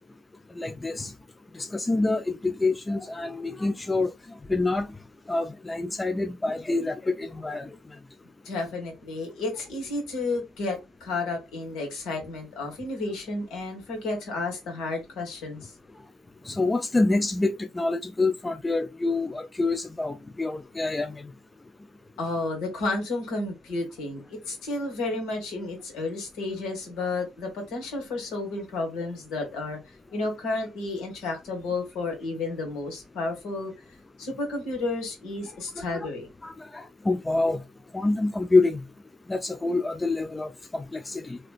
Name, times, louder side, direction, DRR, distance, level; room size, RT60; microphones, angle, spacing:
voice 1, 0.6-1.1 1.6-4.1 4.5-4.9 5.3-7.7 16.5-21.3 35.8-36.1 36.4-37.6 37.9-38.8 39.3-41.4, left 3 dB, 20° left, 0.3 m, -26 dB
voice 2, 8.4-15.7 22.2-29.8 30.1-33.7 34.2-36.3, left 2 dB, 65° left, 1.6 m, -32 dB
3.2 x 2.8 x 2.3 m
hypercardioid pair, 55°, 0 cm